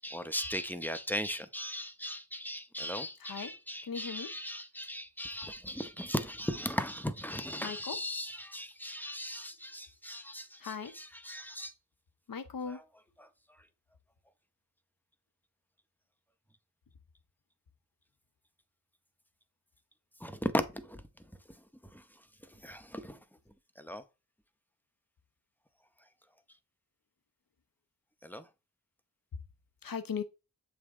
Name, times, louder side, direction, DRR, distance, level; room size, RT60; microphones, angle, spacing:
voice 1, 0.0-11.7 20.2-21.0 21.9-22.0 22.4-23.2 23.8-24.0 28.2-28.5, equal, 5° left, 0.8 m, -37 dB
voice 2, 3.2-3.5 3.8-4.3 7.6-8.0 10.6-10.9 12.3-12.8 29.3-29.4 29.8-30.2, left 6 dB, 85° left, 0.8 m, -38 dB
7.5 x 3.5 x 3.6 m
wide cardioid pair, 50°, 34 cm